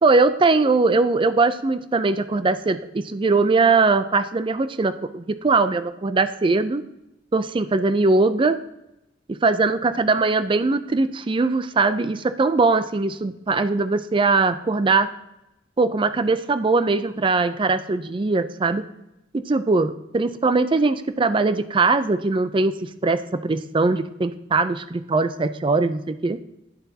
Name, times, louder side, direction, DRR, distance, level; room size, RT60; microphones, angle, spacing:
voice 1, 0.0-6.8 7.3-8.6 9.3-15.1 15.8-18.9 19.3-26.4, right 3 dB, 25° right, 12 dB, 0.4 m, -21 dB
9.1 x 7.1 x 2.8 m, 0.88 s
head